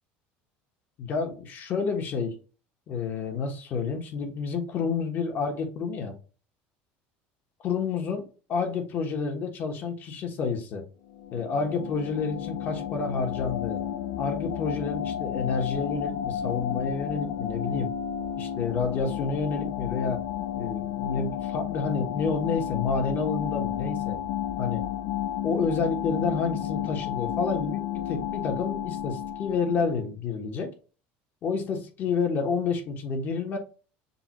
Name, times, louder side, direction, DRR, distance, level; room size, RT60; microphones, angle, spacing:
voice 1, 1.0-2.4 2.9-6.2 7.6-10.8 11.3-13.8 14.2-17.9 18.3-20.2 20.5-24.2 24.6-24.8 25.4-30.7 31.4-33.6, left 5 dB, 40° left, 1.2 m, -29 dB
sound 1, 11.1-30.0, left 10 dB, 65° left, 0.4 m, -32 dB
6.7 x 2.4 x 3.0 m
cardioid pair, 145°, 5 cm